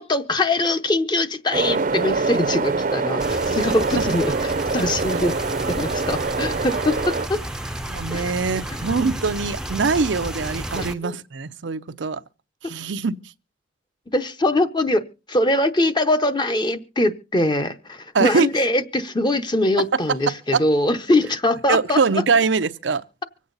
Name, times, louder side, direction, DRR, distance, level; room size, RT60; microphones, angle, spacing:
voice 1, 0.0-5.3 5.7-7.4 8.1-8.3 8.7-8.8 10.7-11.2 14.1-15.0 15.3-22.2, left 1 dB, 25° left, 0.8 m, -22 dB
sound 1, 1.5-7.3, right 3 dB, 45° right, 0.6 m, -24 dB
sound 2, 3.2-10.9, right 1 dB, 5° right, 0.6 m, -32 dB
voice 2, 7.9-12.2 12.6-13.1 18.1-18.5 20.5-20.6 21.7-23.0, right 4 dB, 90° right, 0.6 m, -22 dB
25.0 x 8.4 x 4.0 m
head